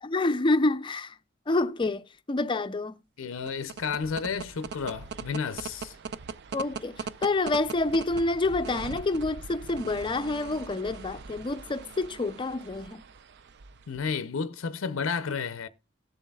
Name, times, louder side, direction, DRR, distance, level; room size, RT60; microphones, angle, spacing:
voice 1, 0.0-1.2 1.5-3.0 6.5-13.0, left 2 dB, 25° left, 0.4 m, -28 dB
voice 2, 3.2-6.0 13.9-15.7, left 5 dB, 85° left, 0.5 m, -32 dB
sound 1, 3.3-14.1, right 5 dB, 60° right, 0.4 m, -41 dB
18.5 x 7.3 x 2.3 m
head